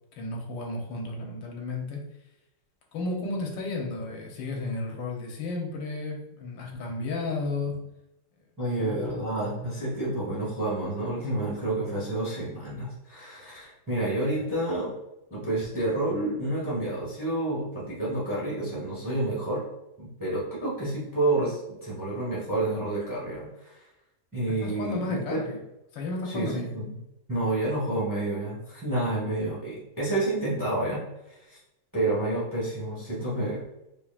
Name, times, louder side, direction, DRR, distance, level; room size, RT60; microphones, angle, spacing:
voice 1, 0.2-2.0 2.9-7.8 8.8-9.2 24.6-25.6 25.9-26.7, left 3 dB, 85° left, 0 dB, 1.6 m, -33 dB
voice 2, 8.6-15.0 15.3-19.7 20.0-23.8 24.3-25.4 26.3-27.0 27.3-31.6 31.9-33.7, right 2 dB, 15° right, -6 dB, 0.8 m, -29 dB
5.0 x 2.7 x 2.4 m, 0.92 s
omnidirectional pair, 2.0 m